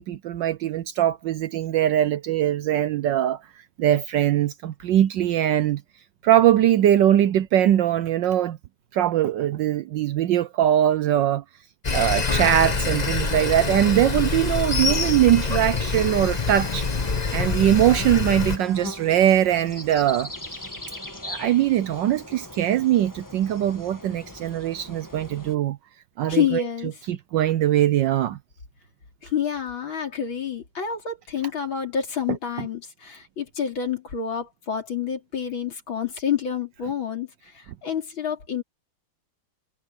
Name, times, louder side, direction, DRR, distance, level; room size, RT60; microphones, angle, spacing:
voice 1, 0.0-3.4 3.8-5.8 6.2-8.6 8.9-11.4 11.9-16.9 17.3-20.6 21.2-25.8 26.2-26.6 27.1-28.4, right 11 dB, 70° right, 1.1 m, -21 dB
Sawing, 11.8-18.6, left 4 dB, 30° left, 0.9 m, -25 dB
Piano, 12.3-19.0, left 3 dB, 85° left, 3.5 m, -43 dB
sound 1, 14.7-25.6, left 1 dB, 10° left, 1.1 m, -40 dB
voice 2, 26.3-27.0 29.2-38.6, left 8 dB, 65° left, 4.1 m, -28 dB
omnidirectional pair, 2.4 m